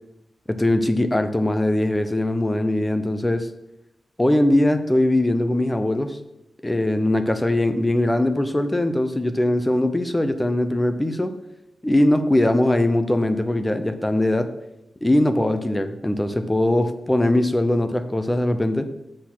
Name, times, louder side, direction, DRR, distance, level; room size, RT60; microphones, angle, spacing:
voice 1, 0.5-3.5 4.2-6.2 6.6-11.3 11.8-14.5 15.0-18.9, left 1 dB, 10° left, 9 dB, 0.6 m, -21 dB
8.2 x 6.3 x 6.0 m, 0.87 s
wide cardioid pair, 175°, 0 cm